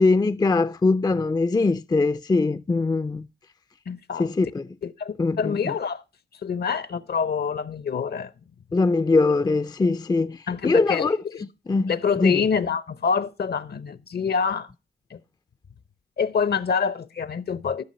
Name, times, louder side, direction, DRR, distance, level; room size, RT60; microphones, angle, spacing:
voice 1, 0.0-3.3 4.2-4.7 5.2-5.7 8.7-11.2 11.7-12.4, left 3 dB, 20° left, 0.4 m, -22 dB
voice 2, 3.9-4.3 4.8-6.0 6.4-8.3 10.5-11.4 11.9-14.7 15.1-15.2 16.2-17.8, left 6 dB, 55° left, 0.8 m, -26 dB
13.5 x 6.1 x 4.2 m
cardioid pair, 55°, 20 cm